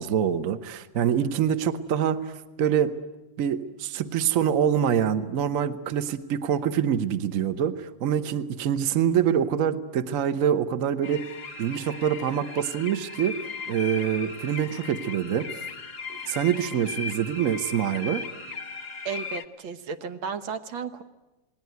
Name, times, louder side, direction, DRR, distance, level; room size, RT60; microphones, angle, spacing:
voice 1, 0.0-2.9 3.4-11.3 11.6-13.4 13.7-15.5 16.1-18.3, right 9 dB, 50° right, 11 dB, 1.3 m, -25 dB
sound 1, 11.0-19.5, left 5 dB, 40° left, 1.0 m, -37 dB
voice 2, 19.1-21.0, right 6 dB, 85° right, 9 dB, 1.9 m, -34 dB
28.5 x 20.0 x 9.4 m, 1.1 s
omnidirectional pair, 2.1 m